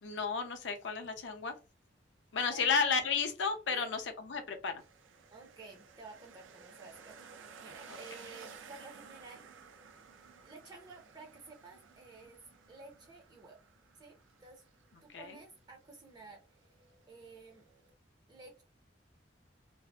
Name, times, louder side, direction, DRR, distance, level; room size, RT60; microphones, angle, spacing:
voice 1, 0.0-1.6 2.3-4.8 7.9-8.0 15.1-15.4, left 5 dB, 70° left, 6 dB, 0.5 m, -33 dB
sound 1, 4.8-17.9, right 5 dB, 90° right, 0.4 m, -55 dB
voice 2, 5.3-9.5 10.4-12.4 12.7-13.6 13.9-14.6 15.0-16.6 17.1-17.6 18.3-18.6, right 3 dB, 20° right, 1 dB, 0.5 m, -53 dB
2.6 x 2.4 x 2.3 m, 0.30 s
head